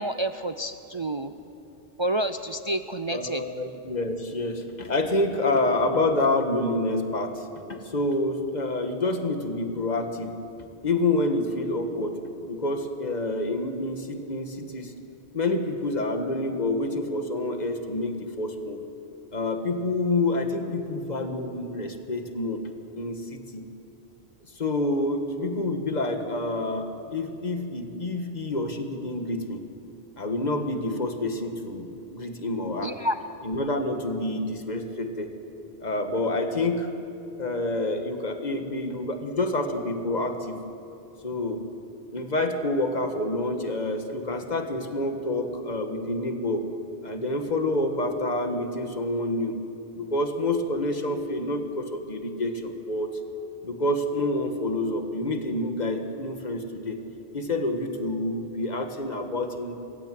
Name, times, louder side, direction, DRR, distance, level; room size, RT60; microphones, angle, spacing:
voice 1, 0.0-1.3 2.0-3.4 32.8-33.2, right 1 dB, 35° right, 9 dB, 0.5 m, -29 dB
voice 2, 3.1-10.3 10.8-14.9 15.3-18.8 19.3-23.6 24.6-29.6 30.2-32.9 33.4-35.4 35.8-36.9 37.4-40.6 41.2-41.7 42.1-46.7 47.0-49.7 50.0-53.2 53.6-57.0 57.3-59.7, left 2 dB, 40° left, 5 dB, 1.7 m, -28 dB
27.5 x 16.0 x 7.7 m, 2.7 s
omnidirectional pair, 1.1 m